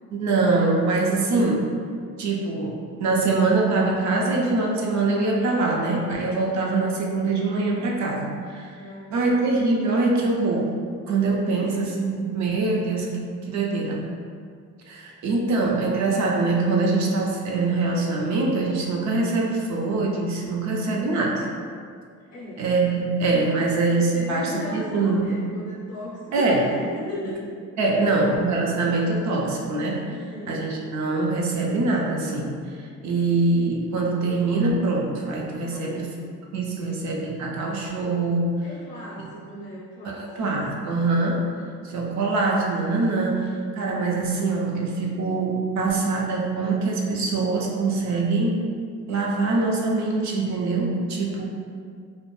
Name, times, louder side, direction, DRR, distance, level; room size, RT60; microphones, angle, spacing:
voice 1, 0.1-1.7 2.2-8.7 9.1-10.7 11.1-14.1 14.9-21.5 22.6-25.4 26.3-26.7 27.8-30.1 30.5-32.5 32.8-36.1 36.5-38.5 40.2-41.5 41.8-48.6 49.1-51.5, right 3 dB, 65° right, -1 dB, 0.6 m, -23 dB
voice 2, 8.8-9.3 11.4-11.8 22.3-22.7 23.1-23.6 24.1-27.5 27.8-28.2 30.1-30.8 35.7-36.1 36.8-37.2 38.6-40.6, left 1 dB, 60° left, -6 dB, 0.6 m, -37 dB
2.5 x 2.0 x 3.0 m, 2.1 s
cardioid pair, 90°, 30 cm